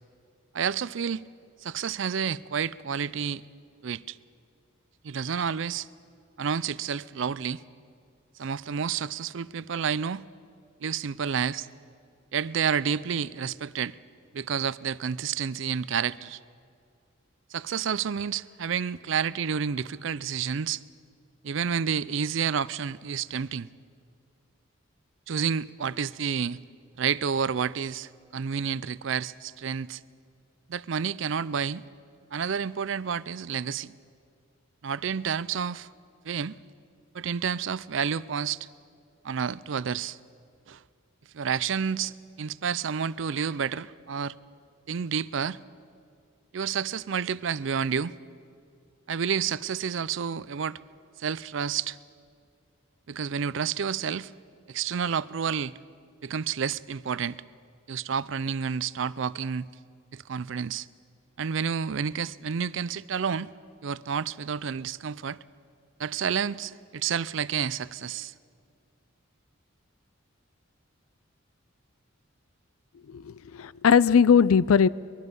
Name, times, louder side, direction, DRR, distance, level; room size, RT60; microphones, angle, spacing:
voice 1, 0.5-1.2 1.6-3.4 3.8-4.2 5.0-5.9 6.4-7.6 8.4-10.2 10.8-11.7 12.3-13.9 14.3-16.4 17.5-20.8 21.4-23.7 25.3-26.6 27.0-30.0 30.7-31.8 32.3-33.9 34.8-35.9 36.2-36.6 37.1-38.7 39.2-40.2 40.7-40.8 41.3-44.4 44.9-45.6 46.5-48.1 49.1-50.8 51.2-52.0 53.1-54.3 54.7-55.7 56.2-57.4 57.9-59.7 60.1-60.9 61.4-63.5 63.8-65.4 66.0-68.3, right 7 dB, 60° right, 0.4 m, -30 dB
voice 2, 73.1-74.9, left 6 dB, 85° left, 0.4 m, -20 dB
23.0 x 22.0 x 5.4 m
head